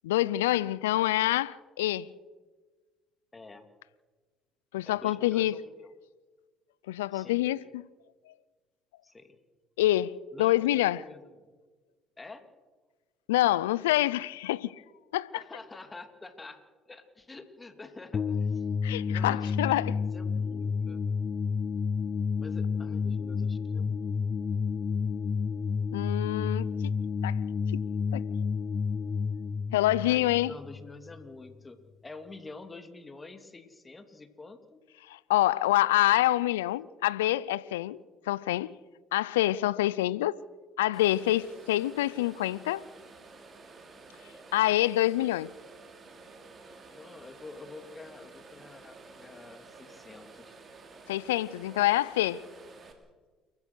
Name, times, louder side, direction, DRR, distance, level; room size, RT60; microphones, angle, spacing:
voice 1, 0.0-2.1 4.7-5.6 6.9-7.8 9.8-11.0 13.3-14.7 15.1-15.3 18.8-19.8 25.9-27.0 27.2-27.4 27.7-27.8 28.1-28.2 29.7-30.5 35.1-38.0 38.3-38.7 39.1-40.4 40.8-42.8 44.5-45.5 51.1-52.4, left 15 dB, 90° left, 0.5 m, -26 dB
voice 2, 3.3-3.7 4.8-5.9 7.1-7.5 9.0-9.4 10.3-11.5 12.2-12.5 15.3-18.6 19.1-21.1 22.4-24.1 30.0-34.8 46.9-50.6, left 3 dB, 25° left, 3.0 m, -48 dB
sound 1, 18.1-31.3, left 5 dB, 40° left, 0.8 m, -30 dB
sound 2, 40.9-52.9, right 3 dB, 40° right, 4.1 m, -51 dB
29.5 x 14.5 x 6.4 m
hypercardioid pair, 60°, 0 cm